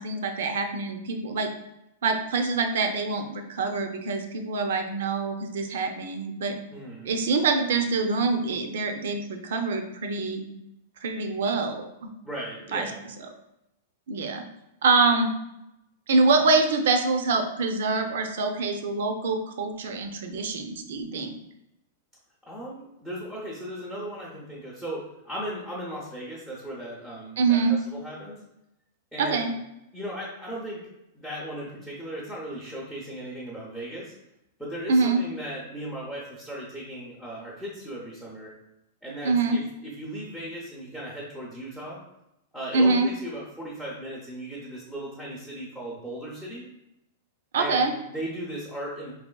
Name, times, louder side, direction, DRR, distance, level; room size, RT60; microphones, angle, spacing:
voice 1, 0.0-1.5 2.0-6.6 7.0-10.4 11.0-12.1 12.7-12.9 14.1-14.4 14.8-15.3 16.1-21.3 27.4-27.8 29.2-29.5 34.9-35.2 39.2-39.6 42.7-43.1 47.5-47.9, right 4 dB, 70° right, 6 dB, 0.5 m, -25 dB
voice 2, 6.7-7.1 12.2-13.0 22.5-28.4 29.1-29.5 29.9-30.8 31.1-34.1 34.6-38.5 39.0-42.0 42.5-46.6 47.6-49.1, right 1 dB, ahead, -5 dB, 0.5 m, -37 dB
4.1 x 2.9 x 2.2 m, 0.87 s
supercardioid pair, 165°, 0 cm